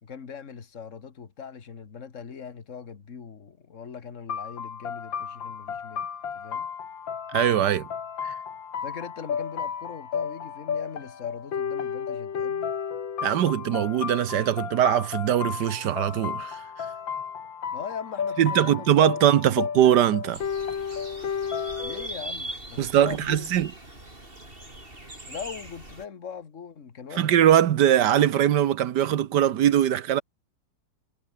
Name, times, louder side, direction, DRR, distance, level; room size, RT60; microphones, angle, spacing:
voice 1, 0.0-6.1 6.4-6.7 8.8-12.7 17.7-19.6 21.8-23.5 25.3-27.4, left 6 dB, 40° left, 2.0 m, -40 dB
sound 1, 4.3-22.1, left 7 dB, 90° left, 2.7 m, -33 dB
voice 2, 7.3-7.9 8.2-8.3 13.2-16.6 18.4-20.4 22.8-23.7 27.2-30.2, right 10 dB, 70° right, 1.4 m, -21 dB
sound 2, 20.3-26.0, right 1 dB, 30° right, 6.0 m, -40 dB
omnidirectional pair, 2.0 m